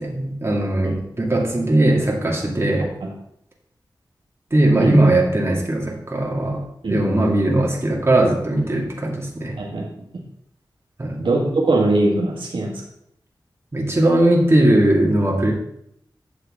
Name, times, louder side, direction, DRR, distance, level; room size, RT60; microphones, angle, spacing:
voice 1, 0.0-2.9 4.5-6.6 6.9-9.6 11.0-11.2 13.7-15.5, right 1 dB, 30° right, -2 dB, 2.2 m, -19 dB
voice 2, 9.6-9.9 11.2-12.7, right 2 dB, 85° right, -3 dB, 1.7 m, -20 dB
8.7 x 6.6 x 3.6 m, 0.75 s
wide cardioid pair, 60°, 8 cm